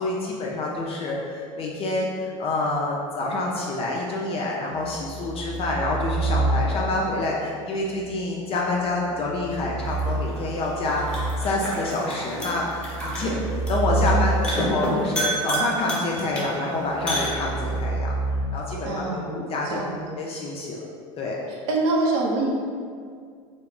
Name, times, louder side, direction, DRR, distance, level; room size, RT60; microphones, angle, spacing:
voice 1, 0.0-18.1 18.5-19.8 20.1-20.8 21.2-21.4, left 2 dB, 35° left, -3 dB, 0.4 m, -27 dB
sound 1, 4.8-7.1 9.2-11.8 12.4-14.9 16.9-18.4, right 2 dB, 50° right, 0.9 m, -28 dB
sound 2, 9.8-17.8, right 1 dB, 5° left, 0.9 m, -31 dB
voice 2, 18.8-20.0 21.7-22.5, right 2 dB, 70° right, -1 dB, 0.5 m, -25 dB
2.2 x 2.0 x 3.6 m, 2.1 s
hypercardioid pair, 90°, 16 cm